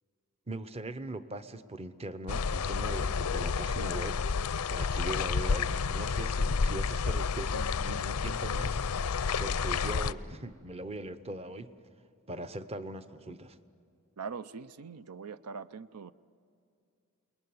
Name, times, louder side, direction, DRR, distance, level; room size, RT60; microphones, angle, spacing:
voice 1, 0.5-9.1 9.4-11.7 12.3-13.6, right 2 dB, 30° right, 11 dB, 0.8 m, -41 dB
sound 1, 2.3-10.1, left 5 dB, 90° left, 0.6 m, -30 dB
voice 2, 14.2-16.1, right 5 dB, 85° right, 15 dB, 0.6 m, -42 dB
28.5 x 21.0 x 9.5 m, 2.4 s
head